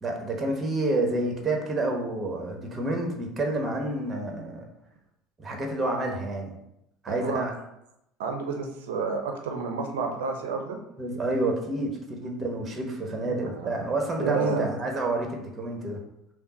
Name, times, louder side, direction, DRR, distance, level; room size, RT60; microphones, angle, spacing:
voice 1, 0.0-4.6 5.4-6.5 7.0-7.5 11.0-16.0, right 2 dB, 25° right, 1 dB, 1.1 m, -29 dB
voice 2, 7.1-7.4 8.2-10.8 13.2-13.7 14.2-14.7, right 5 dB, 70° right, 3 dB, 0.7 m, -30 dB
5.6 x 2.1 x 4.2 m, 0.83 s
figure-of-eight pair, 65°, 0 cm